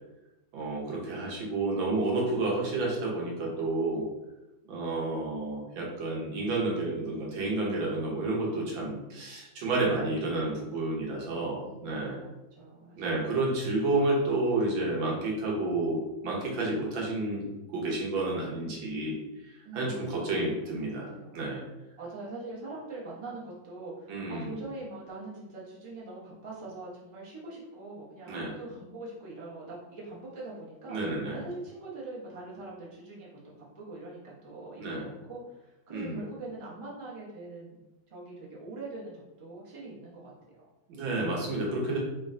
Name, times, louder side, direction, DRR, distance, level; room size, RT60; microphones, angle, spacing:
voice 1, 0.5-4.0 4.7-12.2 13.0-19.2 19.7-21.6 24.1-24.6 28.3-28.5 30.9-31.4 34.8-35.1 35.9-36.2 40.9-42.0, right 2 dB, 80° right, -3 dB, 1.7 m, -30 dB
voice 2, 11.5-12.3 12.6-13.2 19.6-20.8 21.1-21.3 22.0-31.0 31.3-37.8 38.1-40.3, right 2 dB, 35° right, -6 dB, 0.5 m, -43 dB
3.9 x 2.2 x 3.7 m, 1.0 s
omnidirectional pair, 2.1 m